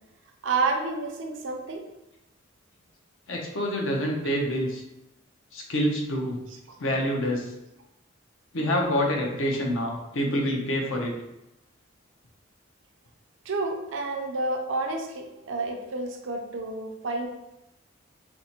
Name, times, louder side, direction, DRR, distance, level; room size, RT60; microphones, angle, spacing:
voice 1, 0.4-1.8 13.5-17.3, right 3 dB, 65° right, 2 dB, 0.5 m, -29 dB
voice 2, 3.3-4.8 5.5-6.4 6.8-7.5 8.5-11.1, equal, 70° left, 0 dB, 0.6 m, -27 dB
4.3 x 2.1 x 2.8 m, 0.92 s
head